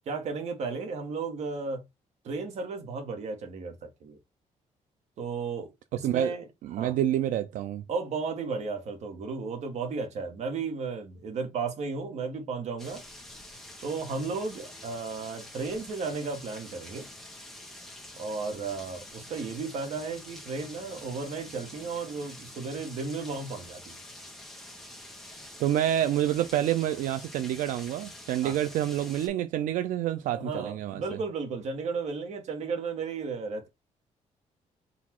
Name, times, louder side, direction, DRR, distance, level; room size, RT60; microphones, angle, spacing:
voice 1, 0.1-1.8 2.2-4.2 5.2-6.5 6.7-6.9 7.9-13.0 13.8-17.1 18.2-24.0 28.4-28.6 30.3-33.7, right 4 dB, 60° right, 1.1 m, -34 dB
voice 2, 5.9-6.4 6.6-7.8 25.6-31.2, right 12 dB, 90° right, 0.4 m, -28 dB
sound 1, 12.8-29.3, left 1 dB, ahead, 0.8 m, -46 dB
4.0 x 2.4 x 4.3 m
cardioid pair, 165°, 13 cm